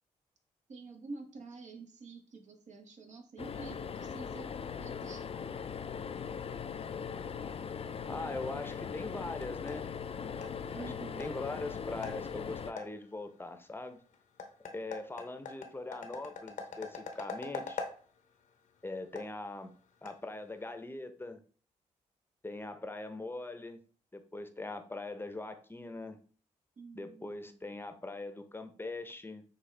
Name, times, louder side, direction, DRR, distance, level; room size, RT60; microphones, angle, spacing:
voice 1, 0.7-5.3 10.7-11.3 26.8-27.6, right 3 dB, 60° right, 4 dB, 1.0 m, -48 dB
sound 1, 3.4-12.7, left 6 dB, 45° left, 0.4 m, -40 dB
voice 2, 8.1-9.9 10.7-14.0 14.6-17.8 18.8-19.7 20.0-21.4 22.4-23.8 24.1-26.2 26.9-29.4, left 2 dB, 15° left, 8 dB, 0.7 m, -41 dB
sound 2, 9.6-20.8, left 4 dB, 70° left, 0.8 m, -46 dB
6.4 x 2.4 x 3.3 m, 0.42 s
supercardioid pair, 50°, 14 cm